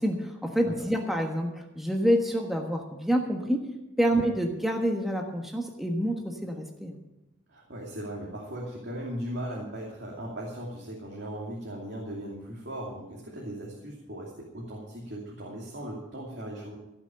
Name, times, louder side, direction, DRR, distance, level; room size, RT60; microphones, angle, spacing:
voice 1, 0.0-3.6 4.0-7.0, equal, ahead, 1 dB, 1.3 m, -27 dB
voice 2, 7.5-16.8, right 1 dB, 60° right, -3 dB, 2.6 m, -38 dB
16.0 x 6.1 x 8.8 m, 0.97 s
head